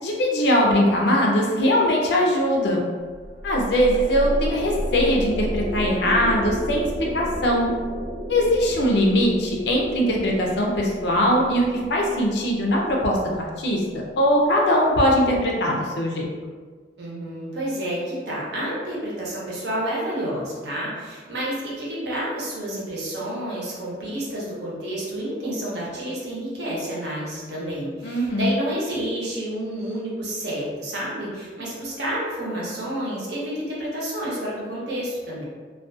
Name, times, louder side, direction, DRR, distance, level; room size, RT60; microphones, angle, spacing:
voice 1, 0.0-2.8 3.4-6.9 7.1-7.7 8.3-11.6 11.9-13.8 14.2-16.3 28.0-28.5, equal, 65° left, -1 dB, 0.5 m, -21 dB
sound 1, 3.1-14.5, equal, 10° right, 0.7 m, -32 dB
voice 2, 17.0-35.4, right 1 dB, 65° right, -5 dB, 0.8 m, -29 dB
2.4 x 2.2 x 2.5 m, 1.5 s
head